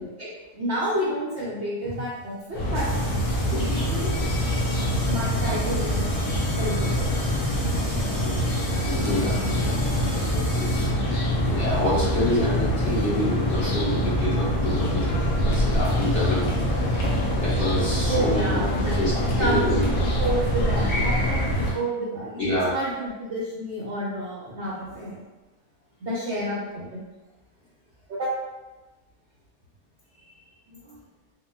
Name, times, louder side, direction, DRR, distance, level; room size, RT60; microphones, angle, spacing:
voice 1, 0.2-2.9 3.6-4.2 5.0-6.1 6.6-7.3 8.1-8.3 10.3-10.5 18.1-19.0 19.4-22.5 22.7-25.2 26.0-27.0 28.1-28.3 30.7-31.0, right 1 dB, 65° right, -7 dB, 0.7 m, -30 dB
sound 1, 1.9-2.0 2.7-10.9, left 1 dB, 70° left, 1.7 m, -38 dB
sound 2, 2.5-21.7, equal, 90° left, 1.3 m, -24 dB
voice 2, 4.4-4.9 8.2-8.4 8.9-9.8 10.5-11.2 11.4-18.6 18.9-19.1 19.4-20.0 22.4-22.7 30.2-30.3, left 1 dB, 50° left, -10 dB, 1.4 m, -28 dB
3.6 x 2.1 x 2.2 m, 1.1 s
omnidirectional pair, 1.7 m